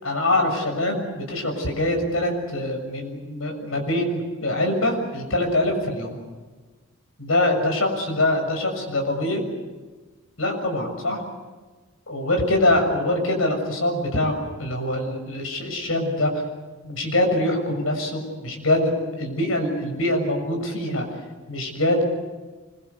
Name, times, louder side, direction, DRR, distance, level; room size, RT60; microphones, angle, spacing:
voice 1, 0.0-6.2 7.2-9.4 10.4-11.2 12.1-16.3 16.8-21.0 21.5-22.0, left 1 dB, 80° left, 3 dB, 6.9 m, -24 dB
25.5 x 22.5 x 8.2 m, 1.3 s
head